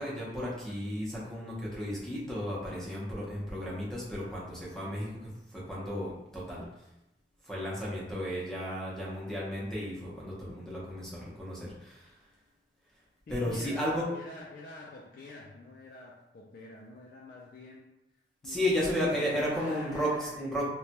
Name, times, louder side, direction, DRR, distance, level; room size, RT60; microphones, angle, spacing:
voice 1, 0.0-6.6 7.5-12.1 13.3-14.0 18.4-20.6, equal, 5° left, -7 dB, 0.7 m, -33 dB
voice 2, 13.3-18.0 18.4-20.6, left 2 dB, 50° left, -2 dB, 0.3 m, -47 dB
3.1 x 2.2 x 2.8 m, 0.91 s
head